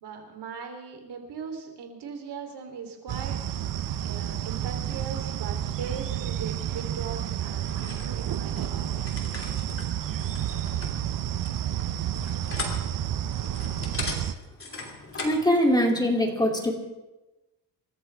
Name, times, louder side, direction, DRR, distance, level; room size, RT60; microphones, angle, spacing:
voice 1, 0.0-3.4 3.9-9.2, right 6 dB, 70° right, 3 dB, 3.5 m, -39 dB
sound 1, 3.1-14.3, right 11 dB, 50° right, 0.8 m, -30 dB
sound 2, 7.6-15.5, left 3 dB, 30° left, 3.0 m, -39 dB
voice 2, 15.2-16.7, equal, 10° left, 1 dB, 2.8 m, -22 dB
27.5 x 13.5 x 3.5 m, 1.1 s
cardioid pair, 125°, 41 cm